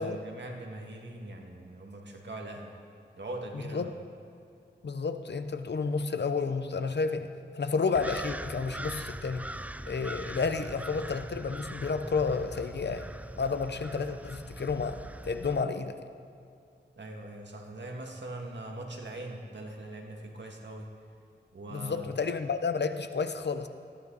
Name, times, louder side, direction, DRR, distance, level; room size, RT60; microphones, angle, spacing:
voice 1, 0.0-2.8 3.1-3.9 17.0-20.9 21.5-22.1, right 2 dB, 75° right, 1 dB, 2.1 m, -41 dB
voice 2, 4.8-9.4 9.9-13.1 13.4-15.0 15.2-16.0 21.7-23.7, left 4 dB, 70° left, 9 dB, 0.9 m, -31 dB
sound 1, 7.9-15.6, right 1 dB, 10° right, 0.4 m, -41 dB
19.0 x 14.5 x 4.1 m, 2.5 s
wide cardioid pair, 75°, 18 cm